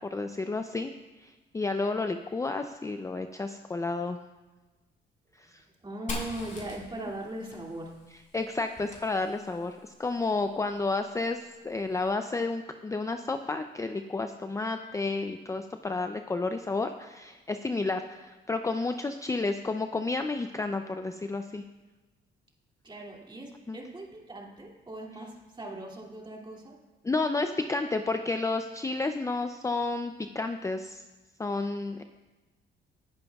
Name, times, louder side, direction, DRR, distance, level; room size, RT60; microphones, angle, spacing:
voice 1, 0.1-0.9 1.2-4.2 5.5-5.6 8.3-21.6 23.7-23.8 27.0-31.0 31.4-32.0, left 3 dB, 15° left, 7 dB, 0.5 m, -31 dB
voice 2, 5.8-7.9 22.8-26.8, right 1 dB, 25° right, -1 dB, 2.5 m, -39 dB
Fire, 6.1-9.8, left 1 dB, 40° left, 4.3 m, -42 dB
19.5 x 10.5 x 2.4 m, 1.2 s
cardioid pair, 90°, 20 cm